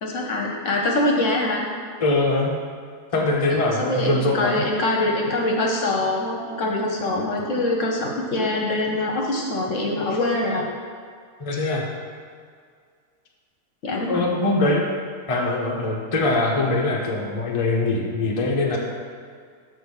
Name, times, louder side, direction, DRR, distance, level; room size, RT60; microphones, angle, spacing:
voice 1, 0.0-1.7 3.5-10.7 13.8-14.3, left 2 dB, 55° left, 0 dB, 1.1 m, -24 dB
voice 2, 2.0-2.5 3.1-4.6 11.4-11.8 14.1-14.9 15.3-18.8, left 2 dB, 30° left, -2 dB, 0.7 m, -22 dB
7.0 x 4.1 x 6.5 m, 2.1 s
omnidirectional pair, 1.7 m